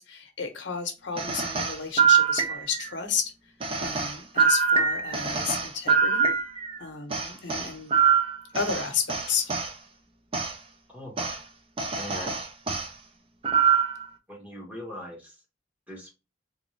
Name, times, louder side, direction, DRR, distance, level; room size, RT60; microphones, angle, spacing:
voice 1, 0.0-3.3 3.8-6.3 6.8-8.0 8.5-9.5, left 6 dB, 70° left, 5 dB, 0.8 m, -32 dB
sound 1, 1.2-2.9 3.6-6.8 7.1-9.7 10.3-10.5 11.2-11.4 11.8-12.9 13.4-14.1, right 6 dB, 30° right, 0.5 m, -24 dB
voice 2, 10.9-11.4 12.0-12.4 14.3-15.3 15.9-16.1, left 1 dB, 10° right, -1 dB, 1.1 m, -40 dB
3.6 x 2.6 x 3.1 m, 0.28 s
head